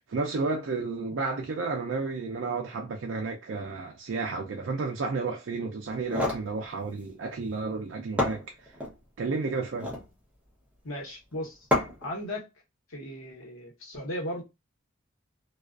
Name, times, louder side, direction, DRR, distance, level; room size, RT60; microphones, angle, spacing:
voice 1, 0.1-8.4 9.2-9.9, right 4 dB, 65° right, 0.4 m, -32 dB
sound 1, 5.9-6.5 7.7-7.8 8.2-9.0 9.6-10.1 11.7-12.1, left 2 dB, 5° right, 0.6 m, -28 dB
voice 2, 10.8-11.6 12.0-12.5 12.9-14.4, left 1 dB, 85° left, 1.0 m, -36 dB
2.3 x 2.3 x 2.3 m
head